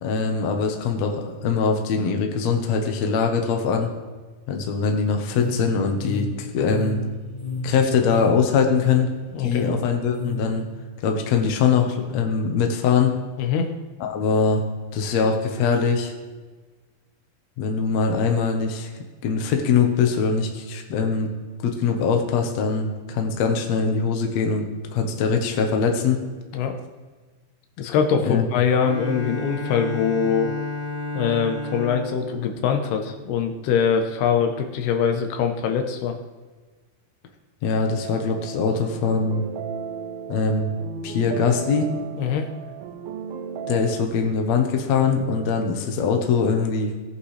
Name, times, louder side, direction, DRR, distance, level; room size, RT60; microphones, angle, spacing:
voice 1, 0.0-3.9 4.5-7.0 7.6-9.1 9.4-10.7 11.0-13.2 14.0-14.6 14.9-16.1 17.6-18.9 19.2-21.3 21.6-24.7 24.9-26.2 28.2-28.5 37.6-39.4 40.3-40.7 41.0-41.9 43.7-46.9, left 5 dB, 65° left, 3 dB, 1.8 m, -22 dB
sound 1, 5.2-10.4, left 2 dB, 10° left, 2.3 m, -32 dB
voice 2, 9.3-9.8 13.4-13.7 26.5-26.7 27.8-30.5 31.1-36.2 42.2-42.4, left 7 dB, 80° left, 5 dB, 2.9 m, -23 dB
Bowed string instrument, 28.8-33.6, left 1 dB, 45° left, 0.8 m, -32 dB
sound 2, 38.0-44.0, right 7 dB, 80° right, 2.4 m, -35 dB
18.0 x 8.3 x 3.3 m, 1.3 s
omnidirectional pair, 4.5 m